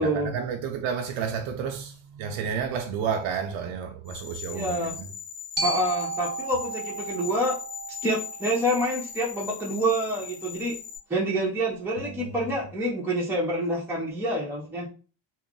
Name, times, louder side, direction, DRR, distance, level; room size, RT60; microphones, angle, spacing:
voice 1, 0.0-5.1 12.0-12.4, right 7 dB, 80° right, 0.5 m, -31 dB
sound 1, 4.1-11.0, left 8 dB, 60° left, 0.8 m, -40 dB
voice 2, 4.5-4.9 5.6-7.6 8.0-10.8 11.1-14.9, right 1 dB, 5° right, 0.8 m, -27 dB
Glockenspiel, 5.6-9.7, right 4 dB, 20° right, 1.1 m, -34 dB
2.3 x 2.0 x 3.6 m
supercardioid pair, 90°, 47 cm